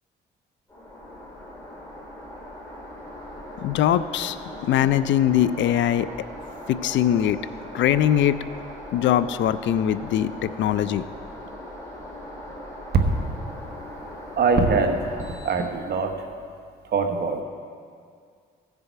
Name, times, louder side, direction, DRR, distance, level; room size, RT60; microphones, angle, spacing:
sound 1, 0.7-16.2, left 1 dB, 15° left, 3.0 m, -40 dB
voice 1, 3.6-4.4 4.7-6.1 6.7-7.4 7.7-8.4 8.9-11.0, left 11 dB, 70° left, 14 dB, 0.4 m, -21 dB
voice 2, 14.4-15.0 15.4-16.1 16.9-17.4, right 4 dB, 55° right, 5 dB, 1.2 m, -22 dB
15.5 x 6.9 x 4.5 m, 2.2 s
cardioid pair, 90°, 20 cm